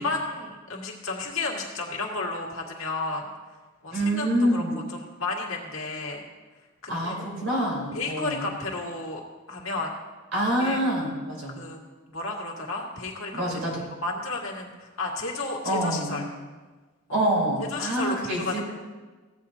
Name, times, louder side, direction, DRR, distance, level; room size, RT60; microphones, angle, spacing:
voice 1, 0.0-3.3 3.8-4.6 4.9-6.2 6.8-7.2 7.9-9.2 9.5-9.9 10.6-10.8 11.5-11.8 12.1-13.4 14.0-16.2 17.1-17.2 17.7-18.6, left 3 dB, 80° left, -2 dB, 1.9 m, -32 dB
voice 2, 3.9-4.9 6.9-8.5 10.3-11.6 13.3-13.8 15.6-16.2 17.1-18.6, right 1 dB, 70° right, -4 dB, 3.8 m, -26 dB
16.0 x 8.6 x 2.8 m, 1.3 s
head